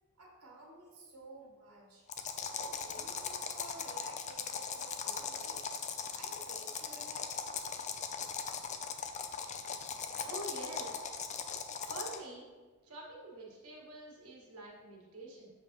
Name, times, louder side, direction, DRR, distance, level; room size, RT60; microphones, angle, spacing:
voice 1, 0.2-2.1 2.5-5.6 6.1-7.3, right 2 dB, 85° right, -2 dB, 1.4 m, -53 dB
sound 1, 2.1-12.3, left 6 dB, 30° left, 0.4 m, -39 dB
voice 2, 10.2-11.0 11.8-12.5 12.8-15.5, right 1 dB, 70° right, -3 dB, 1.6 m, -46 dB
6.9 x 5.1 x 3.0 m, 1.4 s
head